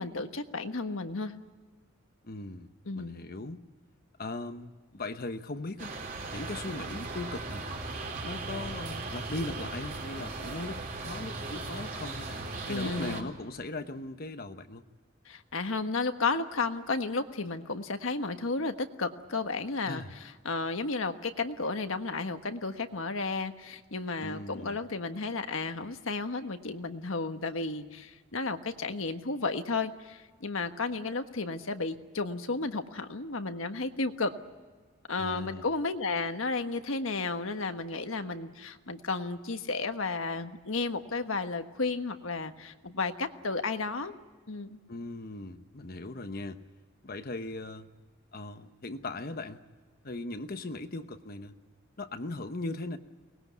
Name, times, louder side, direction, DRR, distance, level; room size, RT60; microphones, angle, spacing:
voice 1, 0.0-1.3 2.8-3.2 12.7-13.3 15.2-20.0 20.4-34.3 35.1-44.1 44.5-44.8, left 3 dB, 70° left, 7 dB, 1.4 m, -33 dB
voice 2, 2.2-3.6 4.2-5.9 6.3-7.7 8.2-14.8 19.8-20.1 24.2-24.8 35.2-35.7 44.9-46.6 47.0-47.9 48.3-49.6 50.0-51.5 52.0-53.0, left 2 dB, 45° left, 8 dB, 1.0 m, -39 dB
sound 1, 5.8-13.2, right 3 dB, 40° right, 3.9 m, -38 dB
24.0 x 20.0 x 9.4 m, 1.5 s
head